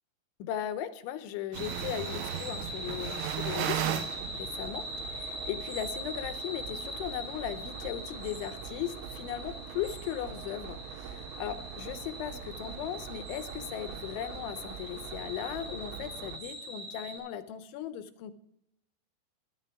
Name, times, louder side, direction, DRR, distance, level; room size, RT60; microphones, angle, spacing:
voice 1, 0.4-18.3, left 11 dB, 80° left, 12 dB, 3.2 m, -38 dB
sound 1, 1.5-17.2, equal, 55° right, 6.8 m, -42 dB
sound 2, 1.5-16.4, right 11 dB, 90° right, 3.4 m, -40 dB
17.5 x 12.5 x 3.6 m, 0.75 s
omnidirectional pair, 5.5 m